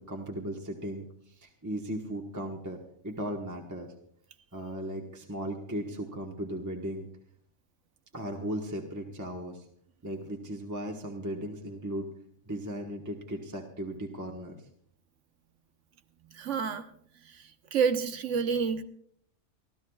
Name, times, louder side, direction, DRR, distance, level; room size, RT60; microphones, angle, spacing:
voice 1, 0.0-2.8 3.0-3.9 4.5-7.1 8.1-9.7 10.0-12.1 12.5-14.6, right 1 dB, 15° right, 1.3 m, -37 dB
voice 2, 16.4-16.9 17.7-18.8, right 6 dB, 80° right, 1.3 m, -28 dB
29.0 x 13.5 x 2.4 m
omnidirectional pair, 1.2 m